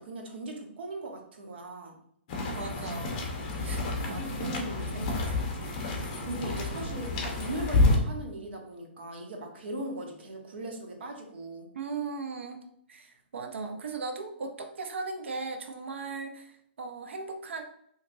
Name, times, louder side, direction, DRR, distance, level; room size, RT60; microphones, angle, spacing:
voice 1, 0.0-2.0 4.0-4.9 6.2-11.7, right 2 dB, 65° right, 2 dB, 0.9 m, -39 dB
sound 1, 2.3-8.0, left 2 dB, 35° left, 0.7 m, -29 dB
voice 2, 2.5-3.1 3.6-4.6 4.9-5.5 11.7-12.6 12.9-17.6, right 4 dB, 90° right, 5 dB, 0.5 m, -38 dB
3.8 x 2.9 x 2.6 m, 0.69 s
hypercardioid pair, 170°, 6 cm